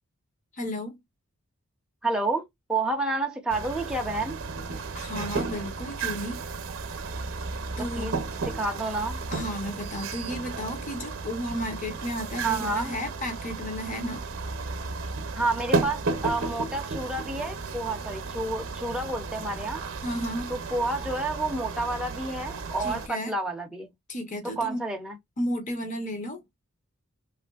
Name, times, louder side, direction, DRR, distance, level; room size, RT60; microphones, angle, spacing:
voice 1, 0.5-1.0 4.9-6.4 7.8-8.1 9.3-14.3 20.0-20.5 22.8-23.3 24.1-24.8 25.4-26.4, equal, 35° left, 0.7 m, -33 dB
voice 2, 2.0-4.4 8.0-8.2 8.5-9.2 12.4-12.9 15.3-19.8 20.5-23.9 24.6-25.2, right 2 dB, 5° right, 0.5 m, -29 dB
sound 1, 3.5-23.1, right 4 dB, 55° right, 0.6 m, -34 dB
3.1 x 2.4 x 2.3 m
head